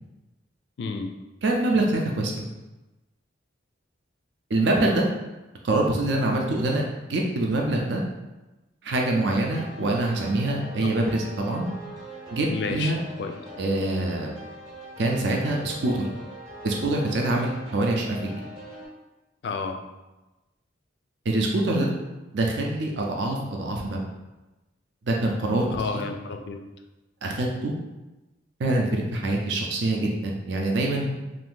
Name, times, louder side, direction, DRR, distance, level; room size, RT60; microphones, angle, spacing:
voice 1, 0.8-1.1 10.8-11.0 12.5-13.4 19.4-19.8 25.7-26.6, left 4 dB, 60° left, 5 dB, 0.3 m, -31 dB
voice 2, 1.4-2.5 4.5-5.0 5.6-8.0 8.8-11.7 12.3-13.0 13.6-14.3 15.0-16.1 16.6-18.4 21.3-21.9 22.3-24.0 25.1-26.0 27.2-27.7 28.6-31.1, right 2 dB, 65° right, 0 dB, 0.4 m, -25 dB
sound 1, 9.3-18.9, right 1 dB, 30° right, 0.7 m, -42 dB
2.6 x 2.5 x 3.6 m, 1.1 s
head